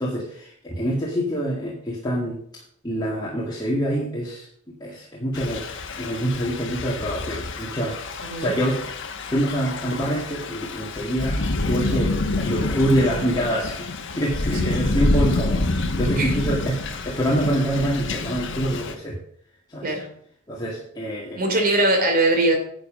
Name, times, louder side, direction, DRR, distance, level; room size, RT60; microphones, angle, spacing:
voice 1, 0.0-2.4 2.8-4.5 4.8-5.6 6.0-8.8 9.2-12.1 12.3-13.9 14.2-16.7 17.0-19.2 19.7-19.9 20.5-21.4, right 1 dB, 20° left, -5 dB, 2.1 m, -26 dB
Thunder / Rain, 5.3-18.9, left 2 dB, 60° left, 1.2 m, -27 dB
voice 2, 21.4-22.6, right 2 dB, 45° right, 3 dB, 3.1 m, -21 dB
10.5 x 7.6 x 5.1 m, 0.65 s
head